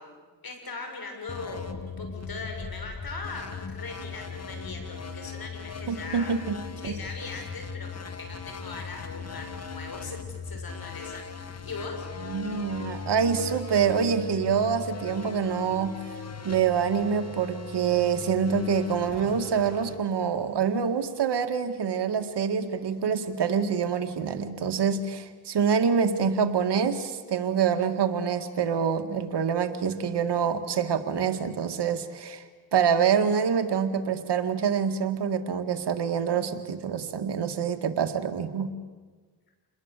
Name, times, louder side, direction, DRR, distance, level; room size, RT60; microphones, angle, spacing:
voice 1, 0.0-6.4 6.8-12.1, left 3 dB, 60° left, 3 dB, 7.0 m, -40 dB
sound 1, 1.3-20.8, left 4 dB, 40° left, 2.1 m, -39 dB
voice 2, 5.9-6.6 6.9-7.0 12.2-16.0 16.4-32.4 32.7-38.7, right 6 dB, 75° right, 8 dB, 2.0 m, -26 dB
28.5 x 21.0 x 8.4 m, 1.4 s
cardioid pair, 65°, 41 cm